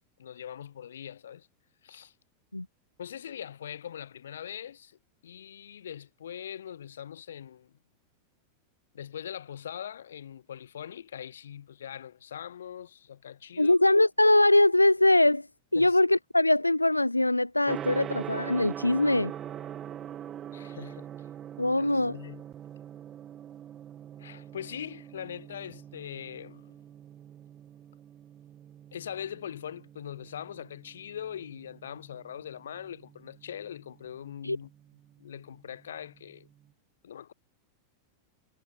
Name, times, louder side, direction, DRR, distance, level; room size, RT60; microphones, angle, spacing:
voice 1, 0.0-1.5 1.8-2.1 3.0-5.0 5.2-7.7 8.9-13.8 15.7-16.0 20.5-21.1 21.7-22.4 24.2-26.8 28.9-34.7 35.2-36.5 37.0-37.3, left 9 dB, 65° left, 6.8 m, -42 dB
voice 2, 13.6-15.5 15.7-19.3 21.6-22.2 34.4-34.6, left 2 dB, 85° left, 0.7 m, -22 dB
Gong, 17.7-36.6, right 10 dB, 30° right, 2.4 m, -44 dB
figure-of-eight pair, 90°, 0 cm